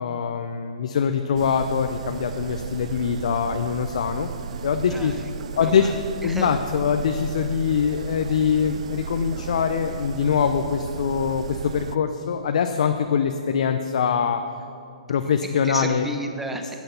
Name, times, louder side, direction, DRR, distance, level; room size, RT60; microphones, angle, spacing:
voice 1, 0.0-4.3 4.6-5.2 5.6-5.9 6.2-14.4 15.1-16.1, left 7 dB, 60° left, 6 dB, 0.6 m, -23 dB
sound 1, 1.3-12.0, right 7 dB, 60° right, 0.4 m, -35 dB
voice 2, 4.9-6.6 15.6-16.7, right 1 dB, 5° right, 4 dB, 1.0 m, -34 dB
13.0 x 9.1 x 5.8 m, 2.5 s
figure-of-eight pair, 120°, 4 cm